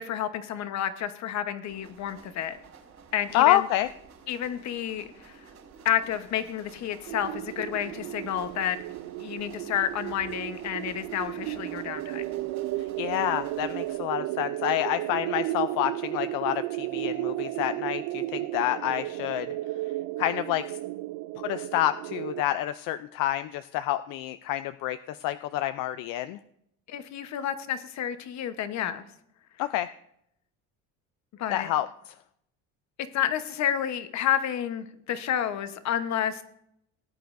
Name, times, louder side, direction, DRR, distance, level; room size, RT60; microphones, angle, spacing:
voice 1, 0.0-2.6 3.1-3.7 4.3-5.3 5.8-8.8 9.2-12.2 26.9-29.0 31.4-31.7 33.1-36.4, left 10 dB, 55° left, 10 dB, 1.0 m, -30 dB
Train Wheels Ride outside Thailand, 1.7-14.0, right 5 dB, 50° right, 4.2 m, -51 dB
voice 2, 3.3-3.9 13.0-19.5 20.2-20.8 21.4-26.4 29.6-29.9 31.5-31.9, left 14 dB, 75° left, 11 dB, 0.5 m, -28 dB
sound 1, 7.1-22.4, right 16 dB, 80° right, 0.5 m, -34 dB
19.0 x 9.3 x 2.6 m, 0.75 s
cardioid pair, 130°, 33 cm